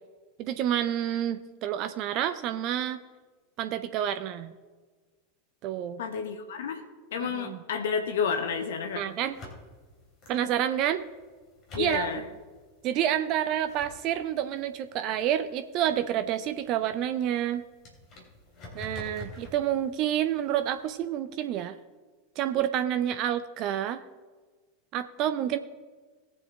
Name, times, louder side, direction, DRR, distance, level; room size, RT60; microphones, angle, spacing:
voice 1, 0.4-3.0 3.6-4.5 5.6-6.0 7.2-7.6 8.9-9.4 10.3-11.0 11.8-12.2 12.8-17.6 18.7-21.8 22.4-24.0 24.9-25.6, right 10 dB, 40° right, 10 dB, 0.5 m, -29 dB
voice 2, 6.0-6.8 7.1-9.1 11.7-12.2, left 6 dB, 65° left, 6 dB, 1.0 m, -30 dB
sound 1, 8.0-21.1, left 2 dB, 35° left, 3.3 m, -50 dB
19.5 x 7.4 x 3.4 m, 1.4 s
figure-of-eight pair, 85°, 0 cm